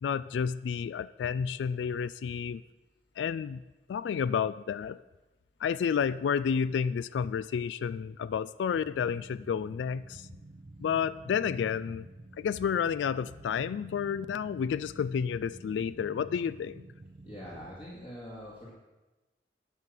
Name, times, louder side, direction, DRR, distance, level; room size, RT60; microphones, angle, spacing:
voice 1, 0.0-2.6 3.2-3.6 3.9-5.0 5.6-10.3 10.8-12.1 12.4-16.9, left 7 dB, 85° left, 17 dB, 0.3 m, -30 dB
sound 1, 8.7-17.7, right 2 dB, 35° right, 0.6 m, -50 dB
voice 2, 17.2-18.7, equal, 35° left, -7 dB, 2.2 m, -44 dB
11.0 x 5.8 x 7.5 m, 1.1 s
head